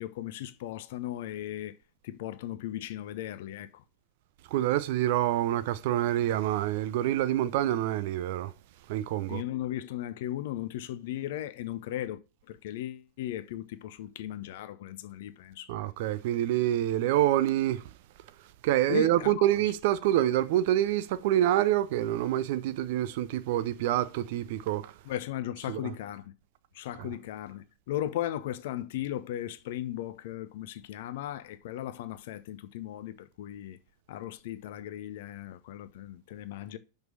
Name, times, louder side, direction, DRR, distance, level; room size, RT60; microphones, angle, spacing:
voice 1, 0.0-1.8 2.0-3.8 9.3-12.2 12.5-15.7 18.9-19.4 25.1-26.3 26.7-33.8 34.1-36.8, left 13 dB, 55° left, 0.7 m, -37 dB
voice 2, 4.5-8.5 8.9-9.4 15.7-17.9 18.6-25.0 25.7-25.9 27.0-27.1, right 13 dB, 50° right, 0.6 m, -27 dB
6.1 x 5.3 x 6.4 m
figure-of-eight pair, 90°, 0 cm